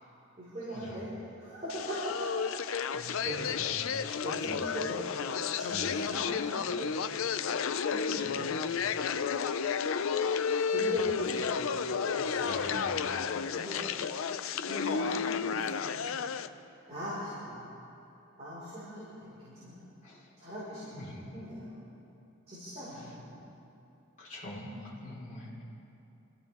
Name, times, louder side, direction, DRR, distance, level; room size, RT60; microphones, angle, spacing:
voice 1, 0.4-2.4 2.7-3.6 4.2-5.2 5.5-7.5 7.9-9.1 10.7-12.7 13.3-14.2 14.6-16.2 16.9-17.8 18.4-19.9 20.4-21.8 22.5-23.5, equal, 30° right, -10 dB, 4.9 m, -41 dB
sound 1, 1.7-16.5, left 6 dB, 75° left, 0.5 m, -32 dB
voice 2, 3.4-3.7 5.7-5.8 12.4-13.1 20.0-20.2 21.0-21.2 24.2-24.7 25.0-25.6, left 1 dB, 35° left, -8 dB, 4.5 m, -43 dB
26.0 x 15.5 x 3.6 m, 2.9 s
head